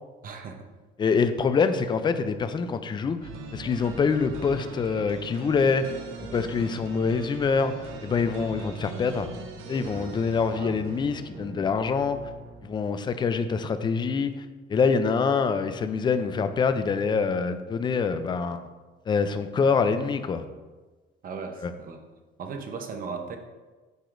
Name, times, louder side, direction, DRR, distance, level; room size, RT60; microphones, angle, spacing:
voice 1, 0.2-0.6 10.5-10.7 21.2-22.0 22.4-23.4, right 5 dB, 40° right, 5 dB, 0.8 m, -37 dB
voice 2, 1.0-6.0 6.3-7.7 8.0-9.3 9.7-12.2 12.6-18.7 19.1-20.4 21.6-21.7, left 5 dB, 20° left, 10 dB, 0.3 m, -25 dB
sound 1, 3.2-13.0, right 3 dB, 75° right, 0.9 m, -41 dB
9.1 x 4.9 x 2.5 m, 1.3 s
cardioid pair, 145°, 21 cm